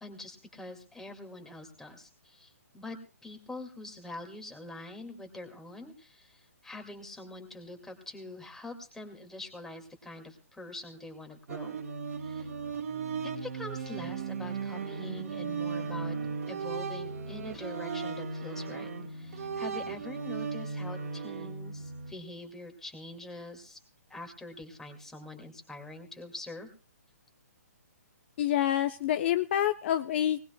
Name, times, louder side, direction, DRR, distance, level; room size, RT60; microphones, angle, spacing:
voice 1, 0.0-11.8 12.2-12.5 13.2-16.2 16.5-23.8 24.1-26.7, left 2 dB, 5° left, 4 dB, 2.1 m, -45 dB
sound 1, 11.5-22.1, right 5 dB, 65° right, 2.2 m, -36 dB
voice 2, 28.4-30.5, left 11 dB, 45° left, 8 dB, 0.7 m, -27 dB
20.0 x 19.0 x 2.2 m, 0.35 s
hypercardioid pair, 155°, 9 cm